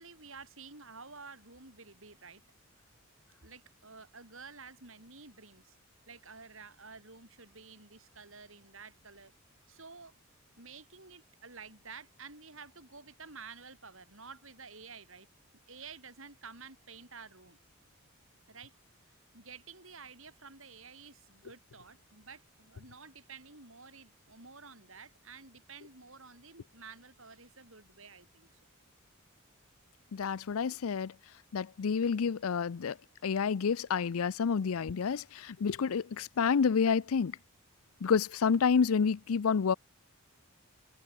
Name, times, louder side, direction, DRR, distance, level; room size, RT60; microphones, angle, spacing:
voice 1, 0.0-2.4 3.4-5.8 6.1-9.3 9.7-10.1 10.6-15.3 15.7-17.6 18.5-18.8 19.1-28.6, right 5 dB, 65° right, 7.9 m, -51 dB
voice 2, 30.1-31.1 31.5-33.0 33.2-37.4 38.0-39.7, left 6 dB, 80° left, 0.5 m, -29 dB
head